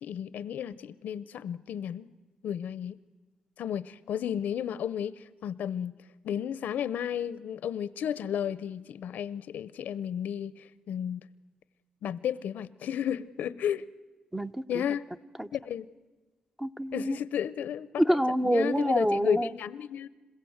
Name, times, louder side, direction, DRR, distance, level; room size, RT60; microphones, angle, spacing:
voice 1, 0.0-2.1 2.4-3.0 3.6-5.9 6.2-11.3 12.0-13.9 14.7-15.1 15.5-15.9 16.9-18.0 18.4-20.1, left 9 dB, 90° left, 0.7 m, -33 dB
voice 2, 14.3-14.8 15.4-15.5 16.6-17.2 18.0-19.5, equal, 10° right, 0.6 m, -27 dB
27.0 x 16.0 x 8.0 m
cardioid pair, 105°, 3 cm